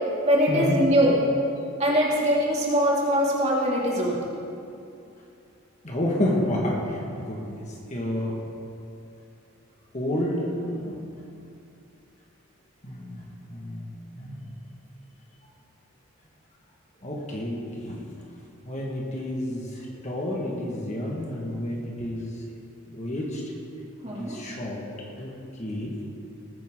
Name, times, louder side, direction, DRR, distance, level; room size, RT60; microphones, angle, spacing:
voice 1, 0.2-1.2 1.8-4.2 24.0-24.4, equal, 30° right, -5 dB, 2.6 m, -22 dB
voice 2, 5.8-6.8 7.2-7.6 7.9-8.3 9.9-10.9 12.8-13.2 13.5-13.9 14.2-14.4 17.0-18.0 18.7-19.7 20.0-22.3 22.9-23.4 24.2-25.3 25.6-25.9, left 1 dB, 35° left, -2 dB, 1.7 m, -29 dB
19.5 x 9.8 x 3.8 m, 2.6 s
head